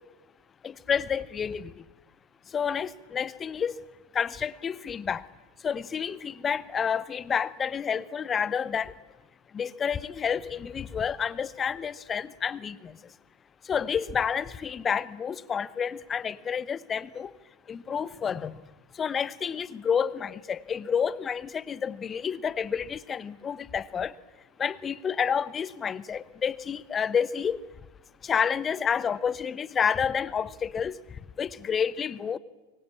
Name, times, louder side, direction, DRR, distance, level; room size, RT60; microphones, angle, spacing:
voice 1, 0.6-1.7 2.5-3.7 4.1-5.2 5.6-8.9 9.5-12.9 13.7-17.3 17.7-18.6 19.0-24.1 24.6-27.6 28.2-31.0 31.4-32.4, left 7 dB, 20° left, 20 dB, 0.9 m, -29 dB
24.5 x 23.0 x 8.6 m, 1.1 s
figure-of-eight pair, 90°, 0 cm